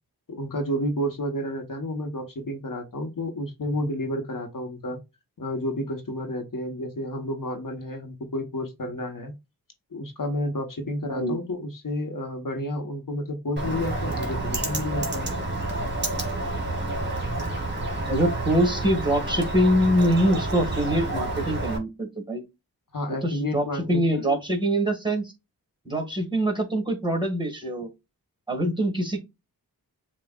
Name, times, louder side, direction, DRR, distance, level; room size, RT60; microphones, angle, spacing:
voice 1, 0.3-5.0 5.4-9.3 9.9-15.3 22.9-24.4, left 1 dB, 55° left, 1.1 m, -31 dB
Bird, 13.6-21.8, right 2 dB, 30° right, 1.6 m, -29 dB
voice 2, 18.1-22.4 23.2-25.3 25.9-27.9 28.5-29.2, right 1 dB, 10° right, 1.8 m, -24 dB
7.1 x 2.4 x 2.3 m
wide cardioid pair, 55°, 38 cm